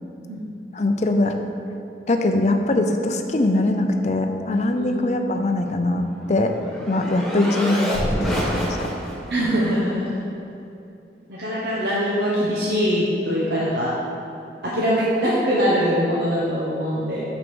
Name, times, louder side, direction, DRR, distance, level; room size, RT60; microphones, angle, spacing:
voice 1, 0.7-1.4 2.1-6.5 6.9-8.9, left 2 dB, 40° left, 5 dB, 0.5 m, -22 dB
sound 1, 5.8-9.3, equal, ahead, 1.5 m, -27 dB
voice 2, 9.3-10.1 11.3-13.9 14.6-17.2, equal, 65° right, -7 dB, 1.1 m, -22 dB
6.3 x 6.1 x 6.2 m, 2.7 s
head